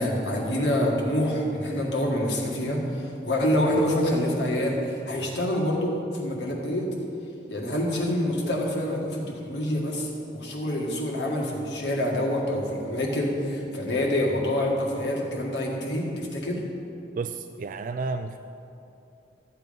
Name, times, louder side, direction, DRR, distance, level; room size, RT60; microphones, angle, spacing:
voice 1, 0.0-6.9 7.5-16.6, left 1 dB, 75° left, -2 dB, 1.9 m, -26 dB
voice 2, 17.2-18.4, right 4 dB, 50° right, 9 dB, 0.3 m, -31 dB
13.0 x 7.7 x 5.3 m, 2.7 s
head